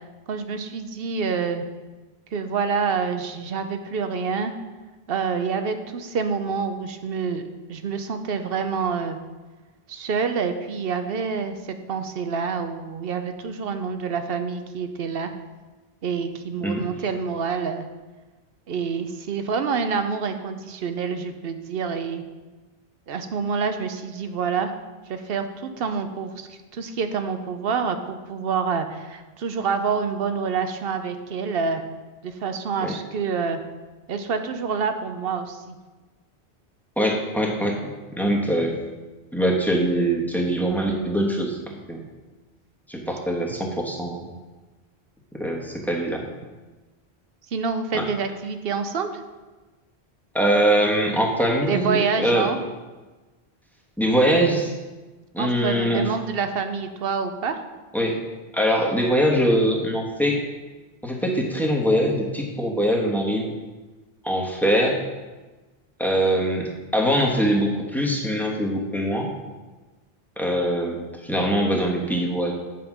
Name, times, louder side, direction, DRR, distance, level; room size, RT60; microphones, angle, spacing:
voice 1, 0.3-1.6 2.3-4.5 5.1-7.4 7.7-9.2 9.9-15.3 16.0-17.9 18.7-22.2 23.1-24.7 25.1-31.8 32.2-33.6 34.1-35.8 47.5-49.1 51.7-52.6 55.4-57.6, right 5 dB, 65° right, 8 dB, 0.9 m, -27 dB
voice 2, 37.0-38.8 39.3-41.6 41.9-42.0 42.9-44.3 45.3-46.2 47.9-48.1 50.3-52.5 54.0-54.7 55.3-56.1 57.9-58.2 58.5-60.4 61.0-63.5 64.2-65.0 66.0-69.3 70.4-72.5, equal, ahead, -1 dB, 1.1 m, -22 dB
7.8 x 5.2 x 6.0 m, 1.2 s
omnidirectional pair, 1.1 m